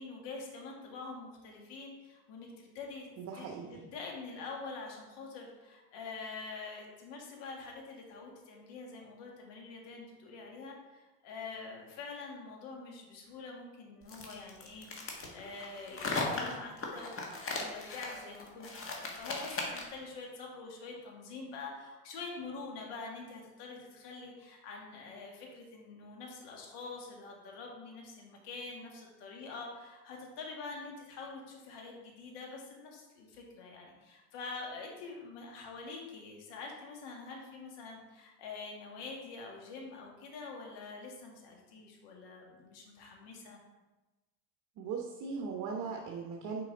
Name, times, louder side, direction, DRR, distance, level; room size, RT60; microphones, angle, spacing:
voice 1, 0.0-3.1 3.4-43.6, left 4 dB, 60° left, 0 dB, 1.9 m, -46 dB
voice 2, 3.2-3.9 44.8-46.6, right 5 dB, 45° right, 1 dB, 1.0 m, -39 dB
sound 1, 14.1-20.0, left 3 dB, 30° left, 1.4 m, -38 dB
6.0 x 4.7 x 3.9 m, 1.1 s
hypercardioid pair, 85°, 46 cm